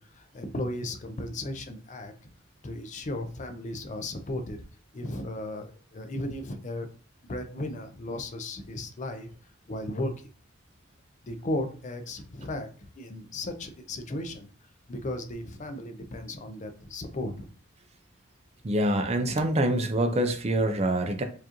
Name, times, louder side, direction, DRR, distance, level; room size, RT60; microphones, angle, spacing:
voice 1, 0.0-2.1 2.6-4.6 4.9-6.9 7.2-9.3 9.7-10.3 11.2-14.5 14.9-17.5, left 1 dB, 35° left, 6 dB, 0.5 m, -35 dB
voice 2, 18.6-21.2, right 1 dB, 30° right, 7 dB, 0.4 m, -25 dB
4.6 x 2.5 x 2.9 m, 0.40 s
head